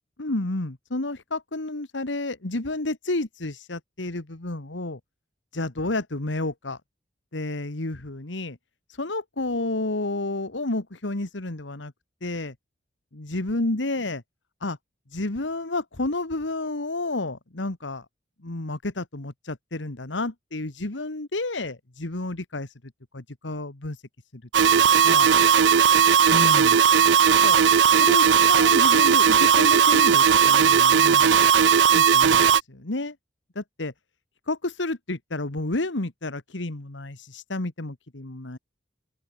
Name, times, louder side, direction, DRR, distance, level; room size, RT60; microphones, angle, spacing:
voice 1, 0.2-5.0 5.5-6.8 7.3-8.6 8.9-11.9 12.2-12.6 13.1-14.2 14.6-14.8 15.1-18.1 18.4-22.7 23.1-24.0 24.3-24.4 24.7-25.3 26.3-26.8 27.4-27.6 28.0-31.4 31.9-33.2 33.6-33.9 34.5-38.6, left 2 dB, 90° left, 1.8 m, -30 dB
sound 1, 24.5-32.6, right 7 dB, 70° right, 0.5 m, -17 dB
open air
head